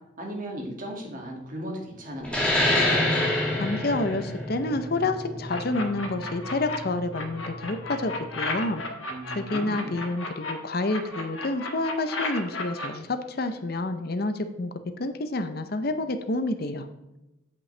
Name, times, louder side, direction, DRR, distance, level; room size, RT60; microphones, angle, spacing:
voice 1, 0.2-2.6 9.1-9.9, equal, 40° right, 0 dB, 2.0 m, -36 dB
sound 1, 2.2-7.4, left 1 dB, 5° left, 2.4 m, -26 dB
voice 2, 3.6-8.8 9.3-14.7 15.0-16.9, left 2 dB, 50° left, 9 dB, 0.6 m, -28 dB
sound 2, 5.5-6.8 7.1-10.5 10.9-12.9, left 3 dB, 75° left, 1.4 m, -33 dB
8.4 x 8.4 x 3.3 m, 0.97 s
head